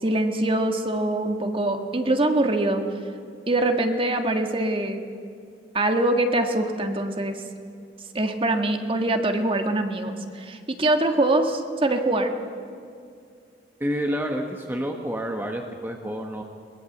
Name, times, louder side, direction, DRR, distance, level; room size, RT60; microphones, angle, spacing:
voice 1, 0.0-2.8 3.5-5.0 5.7-7.4 8.1-12.3, right 2 dB, 30° right, 5 dB, 1.7 m, -23 dB
voice 2, 13.8-16.4, equal, 10° right, 2 dB, 1.3 m, -29 dB
22.0 x 21.0 x 7.9 m, 2.3 s
head